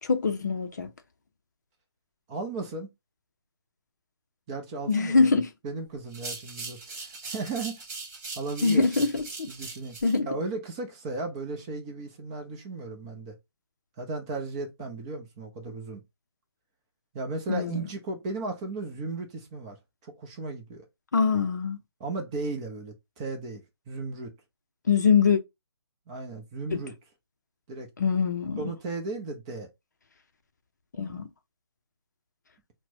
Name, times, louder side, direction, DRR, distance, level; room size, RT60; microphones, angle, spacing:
voice 1, 0.0-0.9 4.9-5.5 8.6-9.5 10.0-10.3 17.5-17.8 21.1-21.8 24.9-25.4 26.7-26.8 28.0-28.6 31.0-31.3, left 5 dB, 45° left, 0.6 m, -23 dB
voice 2, 2.3-2.9 4.5-7.8 8.4-9.0 9.5-10.0 10.2-13.4 14.0-16.0 17.1-19.8 20.0-20.9 22.0-24.3 26.1-26.9 27.7-27.9 28.6-29.7, right 3 dB, 15° right, 0.6 m, -35 dB
sound 1, 6.1-10.2, right 3 dB, 35° right, 1.4 m, -40 dB
5.8 x 2.1 x 2.7 m
figure-of-eight pair, 145°, 14 cm